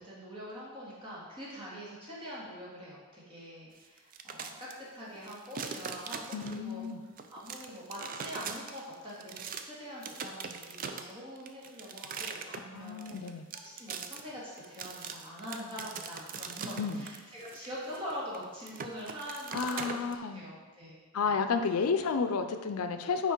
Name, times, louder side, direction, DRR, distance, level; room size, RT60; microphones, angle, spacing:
voice 1, 0.0-6.8 7.3-13.3 13.6-20.0 20.3-21.4, equal, 25° right, -7 dB, 2.0 m, -44 dB
sound 1, 4.0-4.7 5.2-6.8 7.2-9.7 10.0-20.1, right 6 dB, 40° right, 0.4 m, -41 dB
voice 2, 6.3-7.0 12.7-13.5 16.8-17.0 19.5-20.4 21.1-23.3, left 5 dB, 80° left, 8 dB, 0.5 m, -31 dB
5.7 x 4.6 x 4.6 m, 1.3 s
head